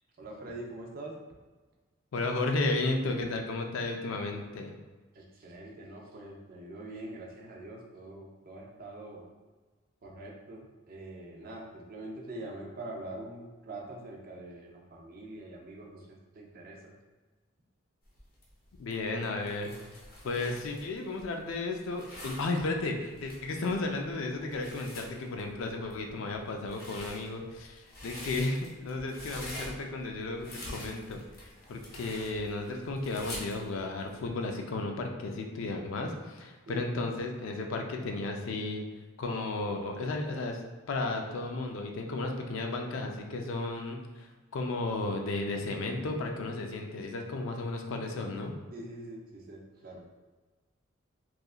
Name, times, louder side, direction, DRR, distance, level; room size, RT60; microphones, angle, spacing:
voice 1, 0.2-1.2 5.1-9.3 10.0-16.1 16.3-16.9 36.7-36.8 48.7-50.0, right 2 dB, 45° right, -1 dB, 0.4 m, -44 dB
voice 2, 2.1-4.7 18.8-19.7 20.2-38.8 39.2-40.6 40.9-48.5, left 2 dB, 65° left, 3 dB, 0.4 m, -34 dB
sound 1, 18.1-34.3, left 1 dB, 45° left, 0.7 m, -46 dB
2.8 x 2.4 x 2.3 m, 1.3 s
head